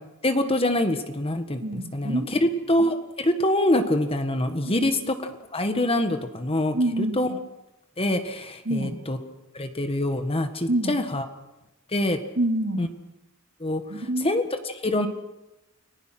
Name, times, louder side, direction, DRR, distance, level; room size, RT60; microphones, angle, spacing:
voice 1, 0.2-5.2 5.5-6.8 7.2-7.3 8.0-9.2 9.5-11.2 11.9-12.2 12.8-12.9 13.6-13.8 14.2-15.1, left 1 dB, 30° left, 8 dB, 1.6 m, -25 dB
voice 2, 1.6-2.3 4.6-4.9 6.7-7.4 8.6-9.0 10.7-11.0 12.4-12.9 13.9-14.3, right 1 dB, 60° right, 3 dB, 3.1 m, -27 dB
29.5 x 19.5 x 6.1 m, 0.94 s
head